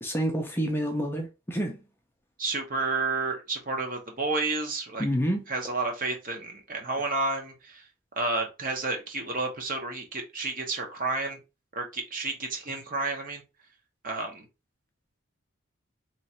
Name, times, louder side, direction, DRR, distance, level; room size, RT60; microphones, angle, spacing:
voice 1, 0.0-1.8 5.0-5.4, equal, 10° left, 0.5 m, -28 dB
voice 2, 2.4-5.1 5.5-7.8 8.2-11.4 11.7-13.4 14.0-14.5, right 3 dB, 40° right, 0.9 m, -31 dB
3.1 x 2.5 x 4.2 m
head